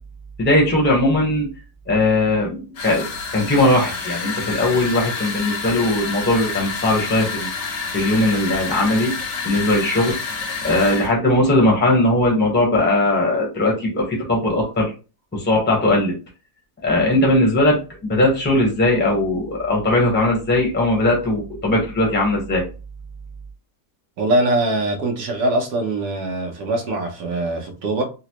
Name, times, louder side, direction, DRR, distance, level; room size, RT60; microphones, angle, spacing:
voice 1, 0.4-1.5 1.9-3.1 3.3-7.5 7.9-9.2 9.4-10.2 10.6-14.9 15.3-16.1 16.8-22.6, left 1 dB, 10° left, 0.8 m, -19 dB
sound 1, 2.8-11.1, left 4 dB, 85° left, 1.6 m, -28 dB
voice 2, 24.2-28.0, right 1 dB, 75° right, 1.4 m, -22 dB
3.9 x 2.1 x 2.9 m
omnidirectional pair, 1.8 m